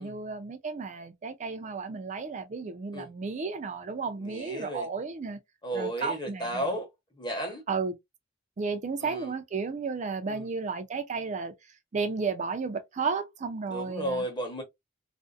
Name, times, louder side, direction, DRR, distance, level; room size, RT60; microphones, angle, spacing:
voice 1, 0.0-5.4 5.7-6.7 7.7-7.9 8.6-11.5 11.9-14.2, right 4 dB, 35° right, 0.4 m, -33 dB
voice 2, 4.2-4.9 5.6-6.9 7.1-7.6 9.0-9.4 10.3-10.5 13.7-14.6, right 1 dB, 20° left, 0.9 m, -34 dB
2.5 x 2.0 x 2.3 m
head